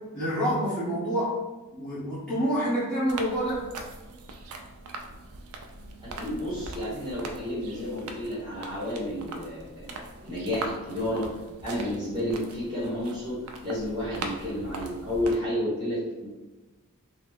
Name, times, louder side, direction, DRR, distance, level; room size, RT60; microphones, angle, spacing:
voice 1, 0.1-1.4 1.7-3.6, equal, 5° left, -13 dB, 1.2 m, -27 dB
sound 1, 3.1-15.4, right 2 dB, 70° right, 0.4 m, -41 dB
voice 2, 6.0-10.0 10.2-11.3 11.6-13.4 13.6-16.3, left 1 dB, 20° right, -10 dB, 1.2 m, -31 dB
3.1 x 2.0 x 3.5 m, 1.2 s
head